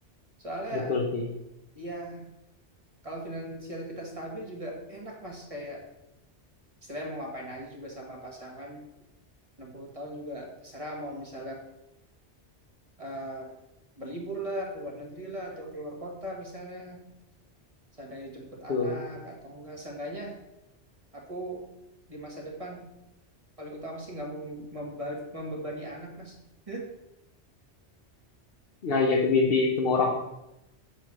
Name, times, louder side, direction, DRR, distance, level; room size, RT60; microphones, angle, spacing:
voice 1, 0.4-1.0 1.7-2.3 3.0-5.9 6.8-8.8 9.6-11.6 13.0-13.5 14.0-17.0 18.0-20.4 21.1-21.6 22.1-22.9 23.6-26.4 26.7-26.9, right 1 dB, 30° right, -1 dB, 1.7 m, -38 dB
voice 2, 0.9-1.2 18.7-18.9 28.8-30.1, left 4 dB, 60° left, -1 dB, 1.2 m, -24 dB
6.9 x 4.6 x 6.0 m, 0.89 s
omnidirectional pair, 1.2 m